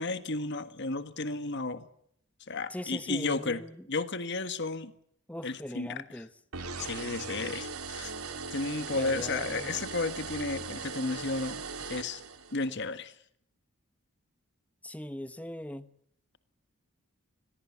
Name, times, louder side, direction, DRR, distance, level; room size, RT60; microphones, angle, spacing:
voice 1, 0.0-1.9 2.5-3.6 3.9-4.9 5.4-6.2 6.8-8.1 8.5-11.6 11.9-12.2 12.5-13.1, left 3 dB, 55° left, 11 dB, 1.6 m, -33 dB
voice 2, 2.7-3.8 5.3-6.3 8.9-9.8 14.8-15.9, left 1 dB, 5° left, 12 dB, 1.0 m, -40 dB
sound 1, 6.5-12.7, right 4 dB, 85° right, 3.4 m, -39 dB
28.0 x 21.0 x 7.3 m, 0.69 s
head